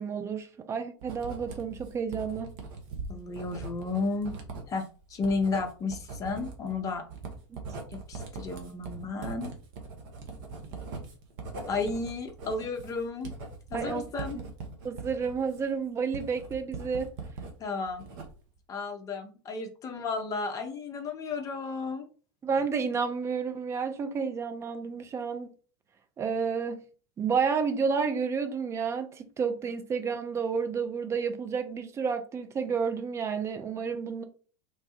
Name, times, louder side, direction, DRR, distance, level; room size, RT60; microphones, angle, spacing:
voice 1, 0.0-2.6 7.5-7.6 13.7-14.1 14.3-14.4 14.8-17.1 22.4-25.5 26.2-26.8 27.2-34.2, right 5 dB, 20° right, 0.4 m, -30 dB
Writing, 1.0-17.5 17.9-18.6, right 4 dB, 50° right, 0.8 m, -41 dB
voice 2, 3.1-4.3 4.7-7.0 7.9-9.5 11.7-13.3 13.7-14.4 17.6-18.0 18.7-22.1, left 3 dB, 25° left, 0.6 m, -33 dB
3.1 x 2.2 x 2.8 m
figure-of-eight pair, 85°, 14 cm